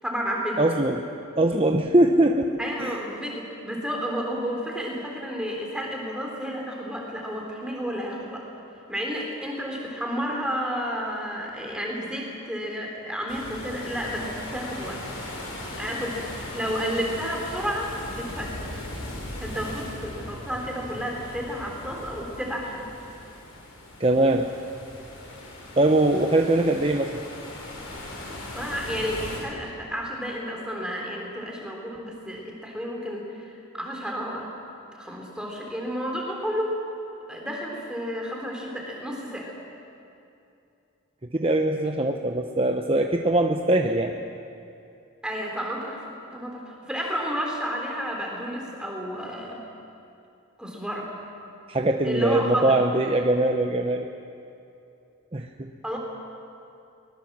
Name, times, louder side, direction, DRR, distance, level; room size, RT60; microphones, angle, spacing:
voice 1, 0.0-0.6 2.6-8.5 8.9-15.0 15.8-18.7 19.4-22.9 28.5-34.5 34.9-36.8 37.3-39.5 45.2-49.6 50.6-51.1 52.0-52.8 55.8-56.0, equal, 5° right, -1 dB, 3.5 m, -31 dB
voice 2, 0.6-1.1 1.4-3.0 24.0-24.5 25.8-27.2 41.3-44.1 51.7-54.1 55.3-55.7, right 1 dB, 25° right, 4 dB, 0.8 m, -22 dB
sound 1, 13.3-29.4, left 1 dB, 70° left, 6.1 m, -38 dB
23.0 x 20.5 x 7.4 m, 2.7 s
head